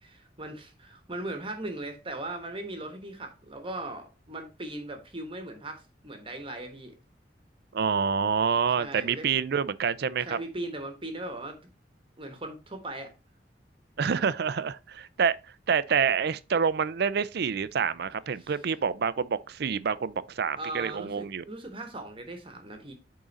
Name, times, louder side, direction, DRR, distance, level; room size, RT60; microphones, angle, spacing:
voice 1, 0.0-6.9 8.8-9.3 10.3-11.7 12.2-13.1 18.4-18.5 20.6-22.9, right 2 dB, 30° right, 1.2 m, -38 dB
voice 2, 7.7-10.4 14.0-15.4 15.7-21.4, right 6 dB, 65° right, 0.5 m, -27 dB
8.7 x 3.8 x 4.1 m
head